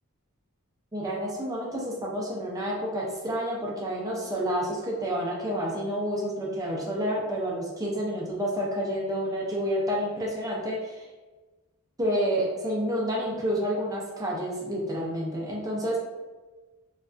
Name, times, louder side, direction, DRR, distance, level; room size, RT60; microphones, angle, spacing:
voice 1, 0.9-11.1 12.0-16.0, equal, 15° right, -3 dB, 0.5 m, -29 dB
3.2 x 2.3 x 2.5 m, 1.3 s
head